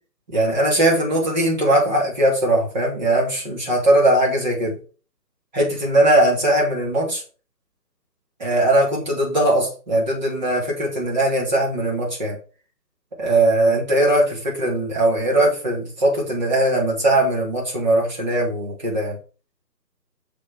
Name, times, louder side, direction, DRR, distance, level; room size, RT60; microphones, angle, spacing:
voice 1, 0.3-4.8 5.5-7.2 8.4-12.4 13.2-19.2, right 1 dB, 25° right, -2 dB, 2.5 m, -20 dB
6.7 x 6.5 x 3.5 m, 0.36 s
hypercardioid pair, 170°, 49 cm